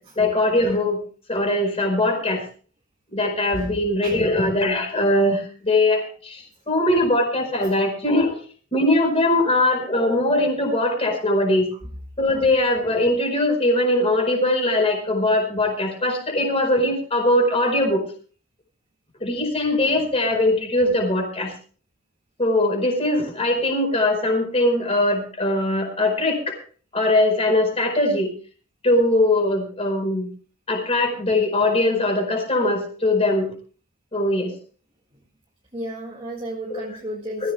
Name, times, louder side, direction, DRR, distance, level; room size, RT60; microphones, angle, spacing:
voice 1, 0.2-1.0 1.3-2.4 3.1-8.4 8.7-11.7 12.2-18.0 19.2-21.5 22.4-26.6 26.9-28.3 28.8-30.3 30.7-33.5 34.1-34.5 36.7-36.8 37.4-37.5, left 1 dB, 25° left, 4 dB, 4.6 m, -21 dB
voice 2, 35.7-37.5, right 1 dB, 25° right, -1 dB, 1.8 m, -33 dB
22.0 x 15.0 x 2.3 m, 0.41 s
head